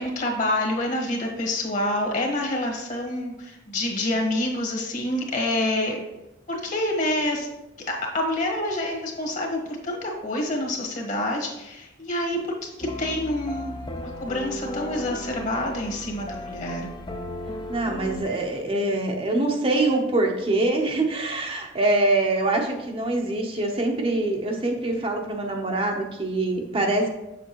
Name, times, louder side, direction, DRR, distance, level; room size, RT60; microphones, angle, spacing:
voice 1, 0.0-6.0 6.5-7.5 7.9-16.9, left 1 dB, 45° left, 0 dB, 1.5 m, -27 dB
sound 1, 12.8-18.2, left 1 dB, 25° left, 0.5 m, -35 dB
voice 2, 17.7-27.1, right 2 dB, 30° right, 2 dB, 0.8 m, -24 dB
7.2 x 6.8 x 3.0 m, 0.94 s
head